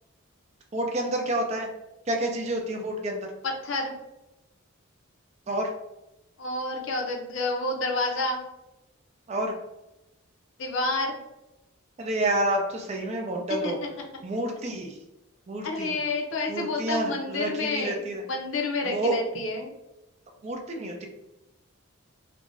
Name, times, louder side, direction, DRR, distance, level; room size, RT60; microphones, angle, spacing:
voice 1, 0.7-1.7 2.1-3.3 5.5-5.7 9.3-9.5 12.0-13.8 14.2-15.0 15.5-16.0 16.5-18.2 18.8-19.2 20.4-21.1, right 1 dB, 30° right, 2 dB, 0.4 m, -29 dB
voice 2, 3.4-3.9 6.4-8.4 10.6-11.2 13.6-13.7 15.6-19.7, left 2 dB, 65° left, 2 dB, 0.5 m, -29 dB
2.5 x 2.2 x 3.1 m, 0.95 s
head